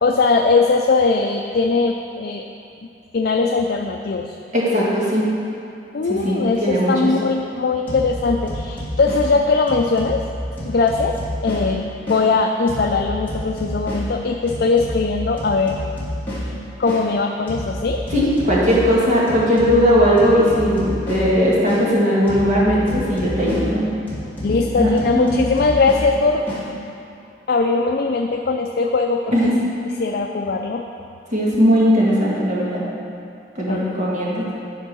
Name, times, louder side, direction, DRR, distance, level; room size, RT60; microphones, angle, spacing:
voice 1, 0.0-2.5 3.1-4.4 5.9-10.2 10.6-15.7 16.8-18.0 24.4-26.4 27.5-29.3 30.0-30.9 33.7-33.9, left 4 dB, 60° left, 3 dB, 0.4 m, -20 dB
voice 2, 4.5-5.3 6.1-6.9 18.1-23.9 24.7-25.3 29.3-29.6 31.3-32.8 33.6-34.5, equal, 45° right, -6 dB, 2.1 m, -18 dB
sound 1, 7.9-12.3 12.7-17.1 17.5-21.9 22.3-26.7, equal, 10° left, 2.3 m, -29 dB
10.0 x 4.5 x 6.2 m, 2.5 s
head